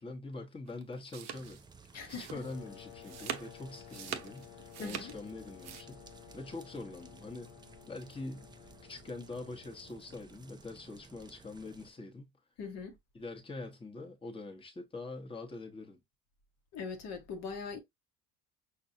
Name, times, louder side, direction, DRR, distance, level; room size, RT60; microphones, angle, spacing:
voice 1, 0.0-1.6 2.0-6.0 6.3-7.5 7.9-8.5 8.8-12.3 13.1-16.0, left 2 dB, 15° left, 0.9 m, -44 dB
sound 1, 0.7-5.8, right 9 dB, 60° right, 0.7 m, -43 dB
sound 2, 1.3-11.9, right 4 dB, 15° right, 0.4 m, -57 dB
voice 2, 1.9-2.3 3.2-3.3 4.8-5.1 12.6-13.0 16.7-17.8, left 5 dB, 60° left, 1.0 m, -41 dB
sound 3, 2.3-10.7, left 15 dB, 75° left, 0.5 m, -54 dB
5.4 x 2.3 x 2.6 m
supercardioid pair, 80°, 30 cm